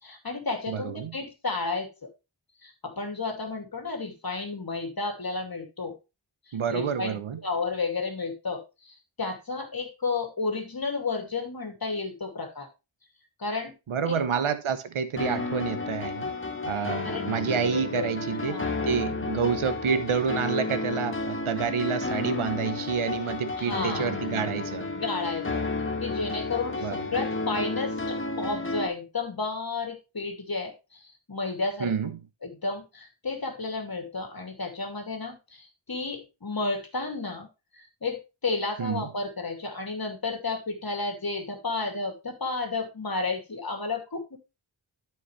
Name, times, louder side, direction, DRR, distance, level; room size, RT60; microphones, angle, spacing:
voice 1, 0.0-2.1 2.6-5.9 6.5-12.7 13.4-13.7 14.1-14.4 17.0-17.3 17.6-19.0 23.6-24.1 24.9-25.6 26.0-31.9 32.4-37.5 37.8-44.4, left 3 dB, 45° left, 2.5 m, -32 dB
voice 2, 0.7-1.2 6.5-7.4 13.9-16.3 16.7-24.9 26.8-27.0 31.8-32.2 38.8-39.1, right 6 dB, 85° right, 1.0 m, -29 dB
sound 1, 15.2-28.9, left 3 dB, 25° left, 1.3 m, -32 dB
13.0 x 4.8 x 3.2 m
wide cardioid pair, 60°, 48 cm